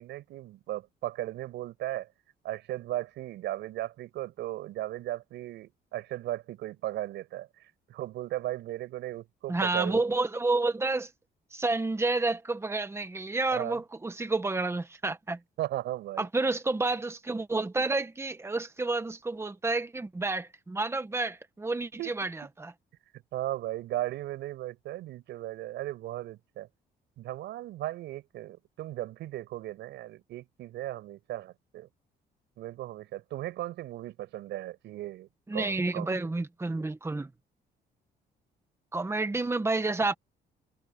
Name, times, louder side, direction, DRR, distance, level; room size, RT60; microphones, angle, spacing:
voice 1, 0.0-2.1 2.4-7.5 7.9-10.0 13.5-13.8 15.6-16.3 22.0-22.2 23.3-26.7 27.2-31.9 32.6-36.2, right 15 dB, 90° right, 5.9 m, -36 dB
voice 2, 9.5-11.1 11.5-15.4 16.2-22.7 35.5-37.3 38.9-40.1, right 3 dB, 15° right, 1.7 m, -30 dB
cardioid pair, 110°, 18 cm